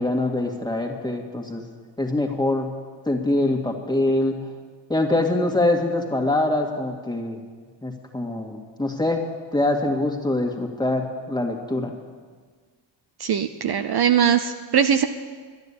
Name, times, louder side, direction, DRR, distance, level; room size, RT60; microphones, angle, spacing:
voice 1, 0.0-1.6 2.0-2.7 3.1-4.4 4.9-7.4 7.8-9.2 9.5-12.0, left 2 dB, 10° left, 2 dB, 2.0 m, -24 dB
voice 2, 13.2-15.1, right 8 dB, 55° right, 8 dB, 0.7 m, -20 dB
12.0 x 10.5 x 8.6 m, 1.5 s
cardioid pair, 95°, 46 cm